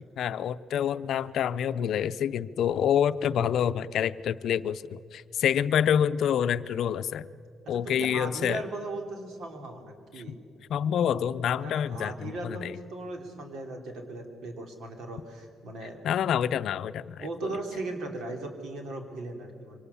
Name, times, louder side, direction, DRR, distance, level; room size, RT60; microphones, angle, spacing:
voice 1, 0.2-7.3 7.7-8.6 10.7-12.7 16.0-17.5, left 9 dB, 70° left, 13 dB, 0.6 m, -27 dB
voice 2, 7.6-10.4 11.6-16.0 17.2-19.8, right 2 dB, 75° right, 4 dB, 3.0 m, -38 dB
24.5 x 18.5 x 7.0 m, 2.3 s
cardioid pair, 90°, 0 cm